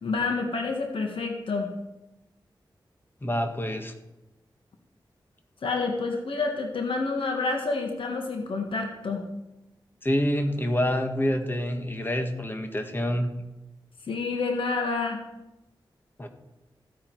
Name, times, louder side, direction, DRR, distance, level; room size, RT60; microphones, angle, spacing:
voice 1, 0.0-1.7 5.6-9.3 14.1-15.2, left 3 dB, 90° left, 3 dB, 1.6 m, -28 dB
voice 2, 3.2-3.9 10.0-13.3 16.2-16.3, equal, 25° left, 5 dB, 1.7 m, -27 dB
15.0 x 9.6 x 4.7 m, 0.97 s
wide cardioid pair, 105°, 9 cm